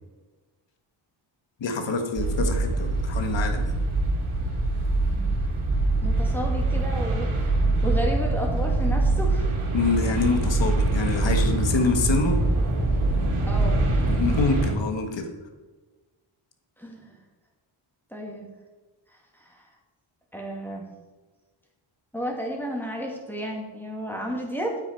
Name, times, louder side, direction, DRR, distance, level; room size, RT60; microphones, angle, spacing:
voice 1, 1.6-3.7 9.7-12.4 14.1-15.3, left 4 dB, 65° left, 5 dB, 1.6 m, -26 dB
sound 1, 2.2-14.7, right 2 dB, 90° right, 2.2 m, -24 dB
voice 2, 6.0-9.5 13.5-13.8 16.8-17.2 18.1-18.5 19.3-19.7 20.3-20.9 22.1-24.8, equal, 5° left, -1 dB, 2.1 m, -32 dB
9.2 x 8.3 x 4.6 m, 1.3 s
wide cardioid pair, 145°, 48 cm